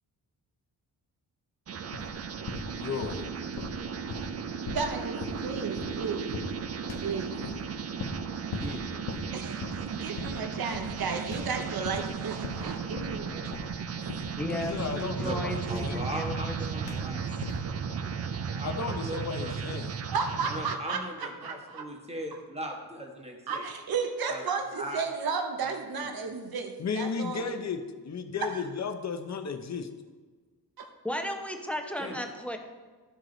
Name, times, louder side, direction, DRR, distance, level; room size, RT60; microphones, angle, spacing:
sound 1, 1.7-20.8, right 6 dB, 40° right, 0.4 m, -35 dB
sound 2, 1.9-2.2 2.5-3.3 3.6-6.0 6.3-6.6 6.9-7.7 8.0-8.3 8.5-8.8 9.1-9.3 9.6-9.9 10.2-10.5 10.7-11.0 11.3-12.1 12.4-13.2 13.5-13.8 14.1-14.4 14.6-16.6 16.9-17.1 17.4-17.7, left 4 dB, 70° left, 1.0 m, -39 dB
voice 1, 2.7-3.3 14.5-16.1 18.6-19.9 26.8-29.9, left 5 dB, 45° left, 7 dB, 0.7 m, -34 dB
voice 2, 4.6-6.3 7.0-7.4 9.3-13.4 20.1-21.8 23.5-27.5 28.5-28.6 30.8-30.9, right 5 dB, 65° right, 5 dB, 0.9 m, -33 dB
voice 3, 14.4-17.2 31.0-32.6, equal, 5° left, 3 dB, 0.7 m, -35 dB
voice 4, 15.7-17.6 18.5-19.5 20.4-23.6 24.3-24.4 24.7-25.0 25.6-26.1 32.0-32.2, equal, 15° right, 1 dB, 1.3 m, -39 dB
13.5 x 4.7 x 3.9 m, 1.4 s
wide cardioid pair, 140°, 40 cm